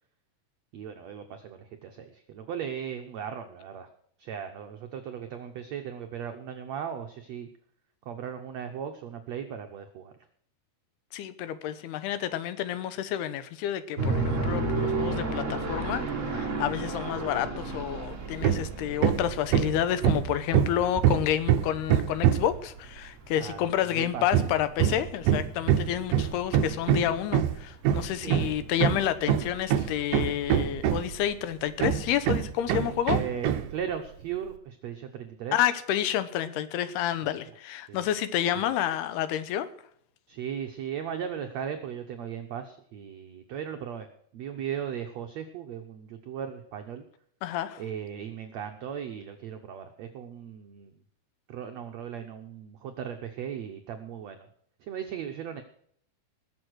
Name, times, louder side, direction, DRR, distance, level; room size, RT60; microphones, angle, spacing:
voice 1, 0.7-3.9 4.2-7.5 8.0-10.1 23.4-24.2 28.2-28.7 33.1-35.6 37.2-37.4 37.9-38.1 40.3-44.1 44.3-47.0 47.8-50.9 51.5-54.5 54.8-55.6, right 8 dB, 85° right, 5 dB, 1.5 m, -37 dB
voice 2, 11.1-33.2 35.5-39.7 47.4-47.8, left 11 dB, 85° left, 13 dB, 3.1 m, -29 dB
sound 1, 14.0-24.0 24.4-24.5 24.8-25.2 25.5-25.6 25.9-26.0 26.6-26.8 27.3-27.4, right 3 dB, 40° right, 1.1 m, -32 dB
Hammer, 18.4-18.7 19.0-22.6 24.3-31.3 31.8-33.7, right 10 dB, 70° right, 2.3 m, -25 dB
20.0 x 7.1 x 6.3 m, 0.65 s
omnidirectional pair, 4.5 m